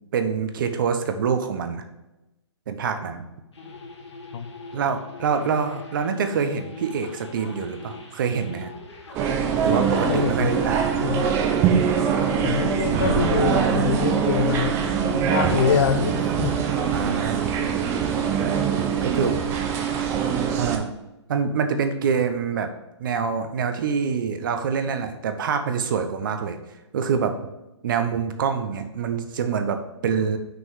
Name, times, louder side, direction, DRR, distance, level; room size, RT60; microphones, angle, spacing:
voice 1, 0.1-1.8 2.7-3.2 4.7-8.7 9.6-10.9 12.1-12.6 16.9-17.5 18.4-18.5 19.0-19.4 20.5-20.9 21.3-22.7 23.0-26.6 26.9-27.3 27.8-30.4, right 6 dB, 45° right, 7 dB, 1.0 m, -25 dB
sound 1, 3.5-20.0, left 3 dB, 70° left, 2.1 m, -41 dB
sound 2, 9.1-20.8, right 7 dB, 20° right, 0.6 m, -23 dB
voice 2, 10.1-10.6 11.0-11.3 12.4-14.8 15.3-16.6, left 8 dB, 45° left, 8 dB, 0.4 m, -25 dB
6.4 x 5.3 x 4.8 m, 0.97 s
hypercardioid pair, 145°, 15 cm